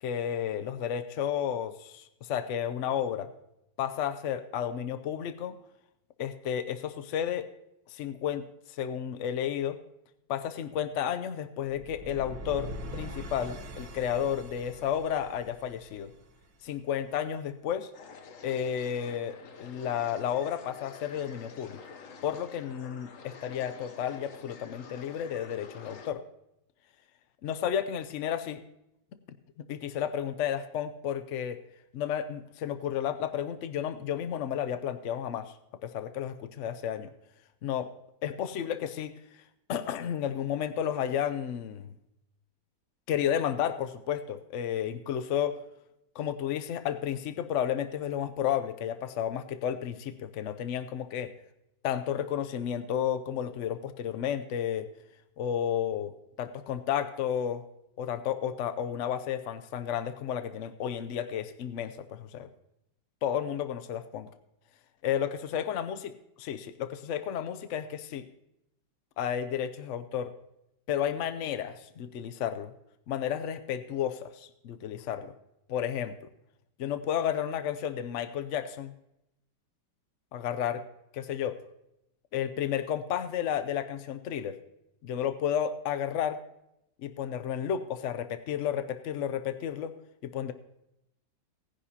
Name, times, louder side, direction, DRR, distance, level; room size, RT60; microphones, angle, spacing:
voice 1, 0.0-3.3 3.8-5.6 6.2-7.5 7.9-9.8 10.3-16.1 16.6-17.9 18.4-21.8 22.2-26.2 27.4-28.6 29.7-31.6 31.9-35.5 35.8-37.1 37.6-37.9 38.2-39.4 39.7-41.9 43.1-45.6 46.1-51.3 51.8-54.9 55.4-56.1 56.4-57.6 58.0-62.5 63.2-64.3 65.0-66.1 66.4-68.2 69.2-70.3 70.9-72.7 73.1-75.3 75.7-76.2 76.8-78.9 80.3-80.8 81.1-81.6 82.3-84.6 85.0-86.4 87.0-90.0 90.2-90.5, left 9 dB, 70° left, 10 dB, 0.7 m, -32 dB
sound 1, 11.7-16.7, equal, 80° right, 1.7 m, -43 dB
sound 2, 17.9-26.1, left 5 dB, 55° left, 1.2 m, -48 dB
18.0 x 10.0 x 2.8 m, 0.84 s
omnidirectional pair, 1.9 m